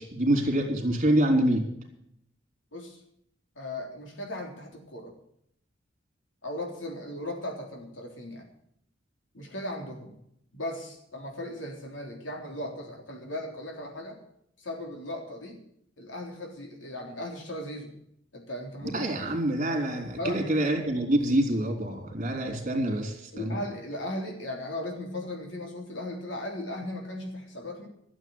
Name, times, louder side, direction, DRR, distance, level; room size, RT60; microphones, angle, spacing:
voice 1, 0.0-1.7 18.8-23.6, right 1 dB, 40° right, 5 dB, 3.4 m, -26 dB
voice 2, 3.6-5.1 6.4-8.5 9.3-10.1 10.5-14.2 14.6-15.6 16.0-17.9 18.3-19.1 20.1-20.6 23.3-27.9, left 1 dB, 75° left, 1 dB, 3.6 m, -37 dB
13.0 x 7.7 x 9.5 m, 0.72 s
head